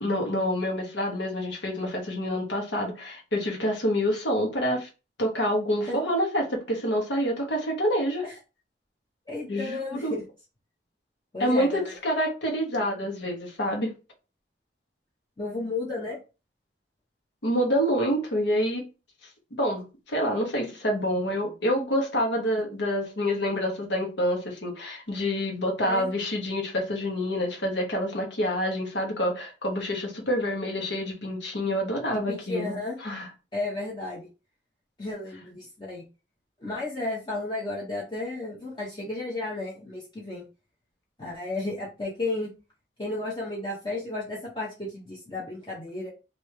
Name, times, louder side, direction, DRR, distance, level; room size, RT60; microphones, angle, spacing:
voice 1, 0.0-4.9 5.2-8.3 9.5-10.1 11.4-13.9 17.4-18.8 19.6-33.3, equal, 85° left, 1.2 m, -27 dB
voice 2, 9.3-10.2 11.3-11.9 12.7-12.8 15.4-16.2 25.8-26.1 32.3-33.0 33.5-34.3 35.0-36.0 36.6-40.4 41.2-42.5 43.0-46.1, left 2 dB, 25° left, 0.7 m, -33 dB
3.2 x 2.7 x 3.2 m
head